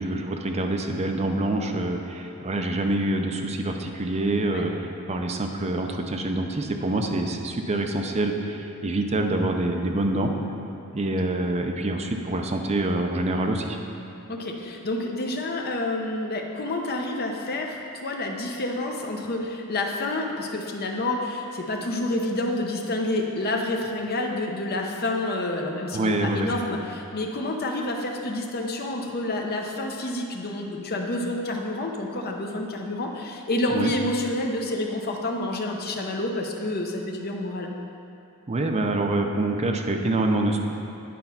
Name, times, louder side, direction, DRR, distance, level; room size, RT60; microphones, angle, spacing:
voice 1, 0.0-10.3 10.9-13.8 25.9-26.5 33.7-33.9 38.5-40.7, right 2 dB, 30° right, 3 dB, 0.6 m, -26 dB
voice 2, 14.3-37.7, left 2 dB, 45° left, 1 dB, 0.8 m, -28 dB
9.4 x 4.3 x 5.7 m, 2.7 s
head